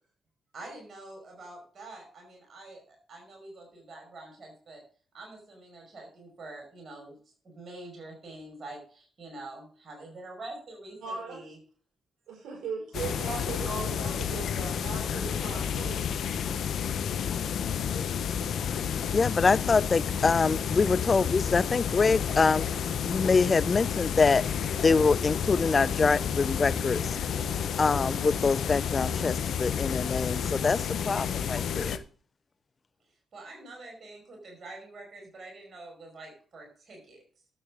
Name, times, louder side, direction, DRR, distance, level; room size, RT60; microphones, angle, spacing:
voice 1, 0.5-4.8 5.1-7.2 7.4-11.6 33.3-37.2, right 2 dB, 55° right, 5.2 m, -46 dB
voice 2, 11.0-11.4 12.3-16.0, right 5 dB, 75° right, 5.3 m, -38 dB
sound 1, 12.9-32.0, left 7 dB, 70° left, 0.8 m, -30 dB
voice 3, 19.1-22.7 23.0-24.4 24.8-27.1 27.8-32.0, left 4 dB, 40° left, 0.4 m, -25 dB
12.0 x 7.9 x 3.7 m
supercardioid pair, 45°, 0 cm